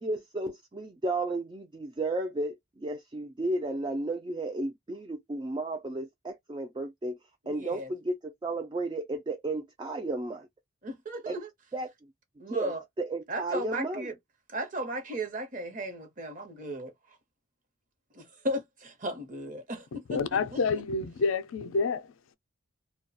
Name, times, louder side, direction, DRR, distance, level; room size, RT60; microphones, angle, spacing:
voice 1, 0.0-7.2 7.5-10.5 11.3-11.4 11.7-11.9 12.5-14.1, right 2 dB, 20° right, 0.3 m, -33 dB
voice 2, 7.4-7.9 10.8-11.5 12.4-12.8 13.3-14.2 14.5-16.9 18.1-20.8, right 1 dB, 40° right, 0.8 m, -36 dB
voice 3, 20.1-22.1, left 4 dB, 70° left, 0.4 m, -28 dB
2.3 x 2.2 x 2.5 m
head